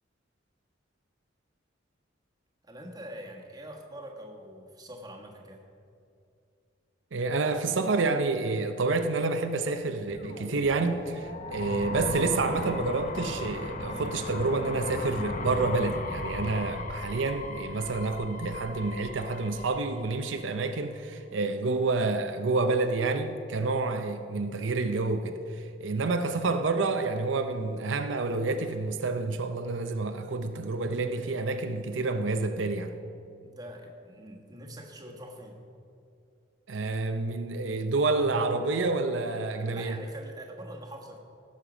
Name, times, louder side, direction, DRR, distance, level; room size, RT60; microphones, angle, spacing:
voice 1, 2.6-5.6 33.4-35.6 39.7-41.2, right 1 dB, 20° right, 1.4 m, -44 dB
voice 2, 7.1-32.9 36.7-40.0, right 3 dB, 85° right, 0.6 m, -28 dB
sound 1, 9.9-20.8, left 2 dB, 40° left, 0.9 m, -37 dB
17.0 x 6.5 x 5.1 m
head